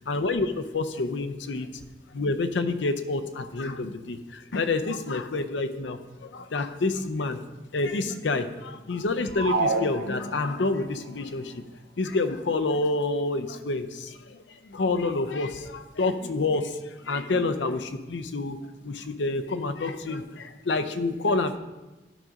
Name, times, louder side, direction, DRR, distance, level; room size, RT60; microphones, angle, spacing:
voice 1, 0.1-1.8 2.1-7.4 7.7-11.6 12.0-18.6 18.8-21.6, left 3 dB, 80° left, 9 dB, 0.6 m, -28 dB
sound 1, 9.3-10.8, right 3 dB, 80° right, 0.6 m, -28 dB
12.0 x 5.2 x 3.6 m, 1.1 s
head